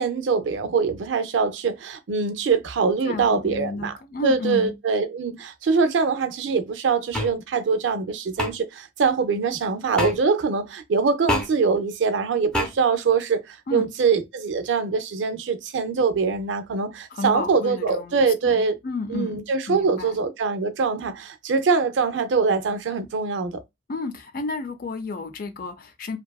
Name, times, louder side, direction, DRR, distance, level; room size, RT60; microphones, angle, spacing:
voice 1, 0.0-3.9 4.2-18.7 19.1-23.6, right 5 dB, 80° right, 0.4 m, -23 dB
voice 2, 3.0-4.8 13.7-13.9 17.1-20.2 23.9-26.2, left 3 dB, 50° left, 0.5 m, -32 dB
sound 1, 7.1-7.3 8.4-8.5 10.0-10.2 11.3-11.5 12.5-12.7, left 1 dB, 5° left, 0.6 m, -24 dB
2.6 x 2.3 x 2.3 m
head